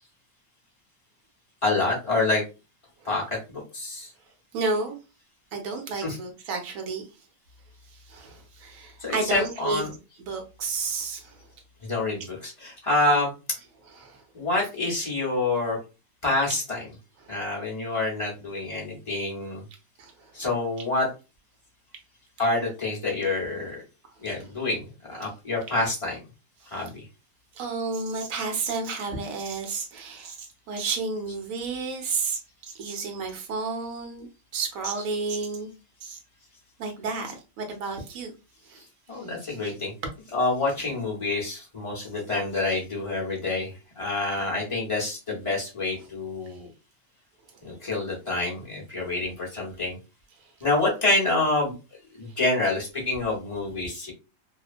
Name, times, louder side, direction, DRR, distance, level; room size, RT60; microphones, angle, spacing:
voice 1, 1.6-2.4 3.0-4.1 5.9-6.2 9.0-9.9 11.8-13.3 14.3-15.8 16.2-16.9 17.3-19.6 20.3-21.1 22.4-23.8 24.2-26.2 26.7-27.0 35.0-35.1 39.1-39.9 40.3-46.7 47.6-50.0 50.6-51.7 52.1-54.1, left 2 dB, 30° left, -4 dB, 0.5 m, -27 dB
voice 2, 4.5-5.0 5.5-7.1 8.1-11.3 13.9-14.2 17.2-17.3 20.0-20.3 27.6-34.3 34.5-35.7 36.0-36.2 36.8-38.3 38.7-38.8 39.4-39.7, right 4 dB, 60° right, 3 dB, 1.0 m, -31 dB
2.9 x 2.1 x 2.4 m, 0.29 s
omnidirectional pair, 1.9 m